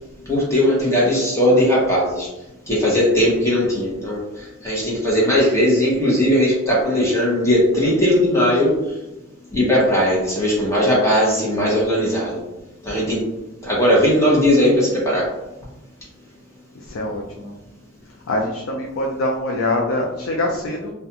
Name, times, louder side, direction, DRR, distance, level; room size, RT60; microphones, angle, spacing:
voice 1, 0.3-2.3 2.7-8.7 9.5-12.4 12.8-13.2 13.6-15.3, equal, 15° left, -6 dB, 0.7 m, -18 dB
voice 2, 16.7-17.5 18.3-20.9, left 1 dB, 65° left, -1 dB, 0.4 m, -24 dB
2.4 x 2.2 x 2.7 m, 0.97 s
head